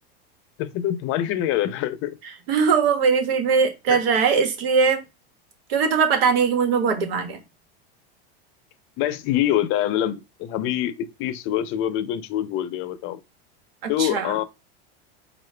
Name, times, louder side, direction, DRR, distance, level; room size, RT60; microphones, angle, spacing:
voice 1, 0.6-2.2 3.9-4.0 9.0-13.2 13.9-14.4, left 12 dB, 45° left, 0.6 m, -25 dB
voice 2, 2.5-5.0 5.7-7.4 13.8-14.4, right 5 dB, 70° right, 1.4 m, -20 dB
4.6 x 2.5 x 3.3 m
supercardioid pair, 135°, 30 cm